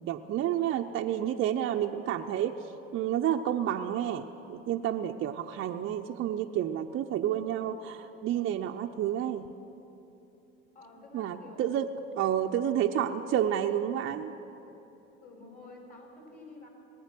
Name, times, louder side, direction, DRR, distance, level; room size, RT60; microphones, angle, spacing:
voice 1, 0.1-9.5 11.1-11.9 12.2-14.3, right 10 dB, 40° right, 4 dB, 0.6 m, -30 dB
voice 2, 10.7-11.8 12.4-12.7 15.2-16.7, left 3 dB, 30° left, 1 dB, 4.2 m, -50 dB
20.5 x 8.6 x 6.0 m, 3.0 s
hypercardioid pair, 70°, 30 cm